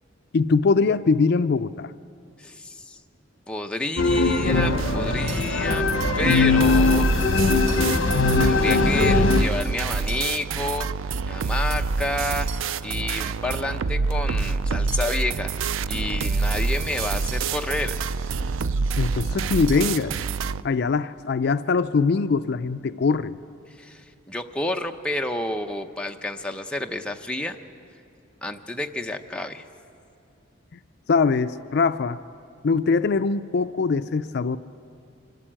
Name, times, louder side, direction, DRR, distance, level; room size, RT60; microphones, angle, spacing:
voice 1, 0.3-1.9 19.0-20.2 20.6-23.4 31.1-32.2 32.6-34.6, left 4 dB, 55° left, 11 dB, 0.4 m, -22 dB
voice 2, 2.4-3.0 3.5-5.8 6.1-7.1 8.4-10.9 11.2-12.5 12.8-15.5 15.9-18.0 23.8-27.6 28.4-29.6, left 1 dB, 5° left, 3 dB, 0.8 m, -30 dB
sound 1, 4.0-9.4, left 3 dB, 70° left, 1.0 m, -20 dB
sound 2, 4.5-20.6, right 4 dB, 80° right, 0.4 m, -27 dB
25.5 x 13.5 x 8.9 m, 2.5 s
head